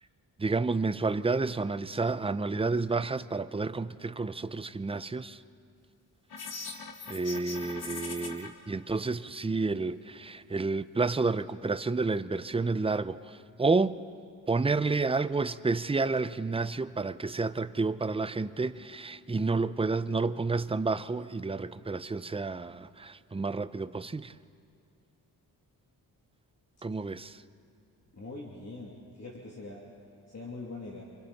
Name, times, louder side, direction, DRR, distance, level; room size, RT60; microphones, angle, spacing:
voice 1, 0.4-5.4 7.1-14.0 14.5-24.3 26.8-27.4, right 3 dB, 15° right, 0.6 m, -30 dB
sound 1, 6.3-8.5, left 4 dB, 65° left, 2.0 m, -40 dB
voice 2, 28.1-29.9 30.3-31.0, left 2 dB, 40° left, 2.9 m, -42 dB
28.0 x 24.5 x 4.2 m
cardioid pair, 65°, 41 cm